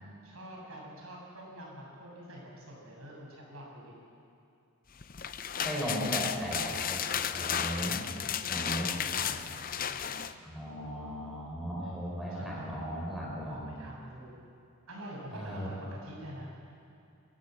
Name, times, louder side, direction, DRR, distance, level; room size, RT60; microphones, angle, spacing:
voice 1, 0.2-3.9 8.5-10.2 11.8-12.8 13.5-14.4 14.9-16.5, right 1 dB, 80° right, -2 dB, 7.5 m, -46 dB
sound 1, 5.0-10.3, left 8 dB, 40° left, 0.6 m, -33 dB
voice 2, 5.6-7.0 7.3-8.0 8.5-8.9 10.4-13.7 15.3-15.7, equal, ahead, -4 dB, 5.1 m, -36 dB
30.0 x 15.0 x 7.9 m, 2.5 s
head